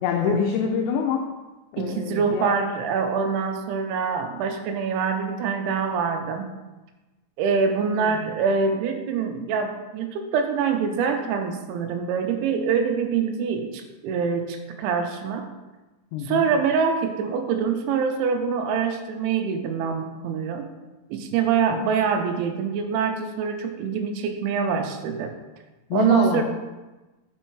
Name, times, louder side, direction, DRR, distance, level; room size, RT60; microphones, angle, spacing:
voice 1, 0.0-1.2 1.7-2.5 8.0-8.2 16.1-16.5 25.9-26.4, left 6 dB, 80° left, 1 dB, 2.7 m, -25 dB
voice 2, 1.8-6.5 7.4-15.5 16.2-20.7 21.1-25.3 25.9-26.4, right 6 dB, 85° right, 5 dB, 3.0 m, -25 dB
6.5 x 5.4 x 4.6 m, 1.1 s
omnidirectional pair, 5.4 m